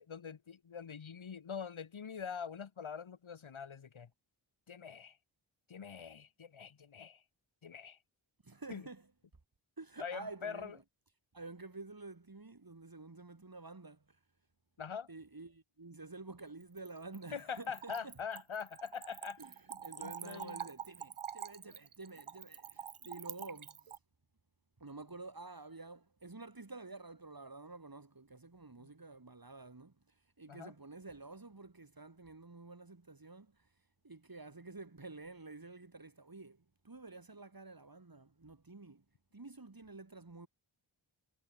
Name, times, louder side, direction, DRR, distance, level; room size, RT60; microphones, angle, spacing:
voice 1, 0.0-4.1 4.7-5.2 5.7-7.2 7.6-8.0 8.7-8.9 10.0-10.8 14.8-15.1 17.3-19.4 20.0-20.6 28.8-28.9 30.5-30.7, left 6 dB, 75° left, 1.6 m, -44 dB
voice 2, 8.4-9.1 9.8-10.8 11.3-14.0 15.1-18.2 18.7-24.0 24.8-30.0 30.4-33.7 34.0-39.0 39.3-40.5, right 3 dB, 45° right, 5.5 m, -50 dB
Splash splatter / Trickle dribble, 16.6-24.0, right 8 dB, 90° right, 1.2 m, -47 dB
cardioid pair, 45°, 48 cm